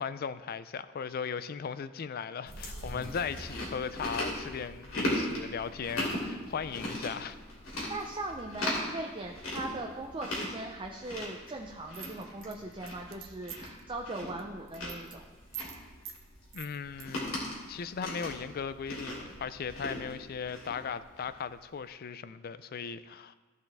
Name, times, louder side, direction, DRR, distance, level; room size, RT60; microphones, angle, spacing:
voice 1, 0.0-7.4 16.5-23.3, left 6 dB, 50° left, 0.4 m, -37 dB
Chewing mastication, 2.5-21.4, left 1 dB, 80° left, 3.0 m, -38 dB
voice 2, 7.9-15.2, right 2 dB, 25° right, 0.6 m, -39 dB
sound 1, 11.9-13.8 14.2-14.4 14.7-15.2 15.5-15.8 16.0-16.2 16.5-17.1, right 10 dB, 75° right, 0.8 m, -44 dB
15.0 x 5.5 x 3.5 m
head